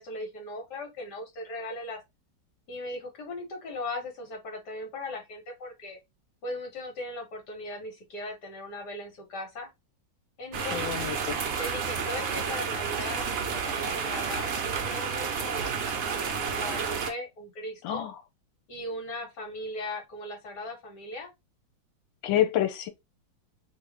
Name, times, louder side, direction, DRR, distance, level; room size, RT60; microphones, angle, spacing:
voice 1, 0.0-2.0 2.7-6.0 6.4-9.7 10.4-11.1 11.6-18.0 18.7-21.3, left 1 dB, 60° left, 1.9 m, -38 dB
sound 1, 10.5-17.1, right 6 dB, 70° right, 0.6 m, -31 dB
voice 2, 10.7-11.4 17.8-18.2 22.2-22.9, left 11 dB, 85° left, 1.4 m, -28 dB
3.5 x 2.5 x 3.5 m
omnidirectional pair, 2.0 m